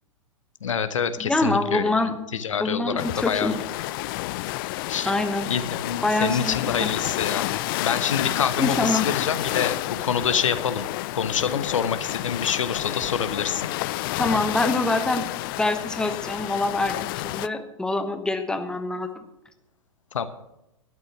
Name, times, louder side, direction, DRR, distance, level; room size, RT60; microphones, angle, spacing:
voice 1, 0.6-2.0 2.3-3.5 4.9-5.1 5.5-7.5 7.8-10.8 11.1-13.7 20.1-20.2, left 7 dB, 75° left, 11 dB, 1.1 m, -26 dB
voice 2, 1.2-2.2 2.6-3.6 5.0-5.5 6.0-6.9 8.6-9.1 14.2-15.3 15.6-19.1, left 2 dB, 5° left, 7 dB, 1.1 m, -25 dB
sound 1, 3.0-17.5, left 18 dB, 45° left, 0.4 m, -30 dB
12.5 x 9.3 x 6.1 m, 0.87 s
hypercardioid pair, 110°, 17 cm